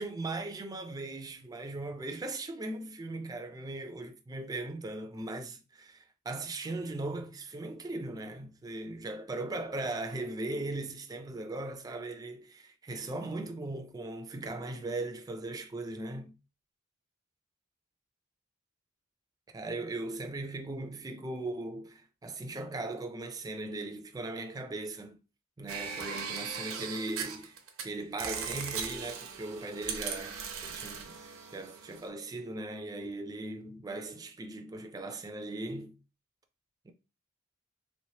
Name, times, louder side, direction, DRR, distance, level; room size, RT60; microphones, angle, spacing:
voice 1, 0.0-16.3 19.5-25.2 25.6-35.9 36.9-37.0, right 2 dB, 20° right, 0.3 m, -38 dB
sound 1, 25.7-27.8 28.2-32.1, right 6 dB, 85° right, 0.7 m, -39 dB
3.1 x 3.0 x 2.8 m
head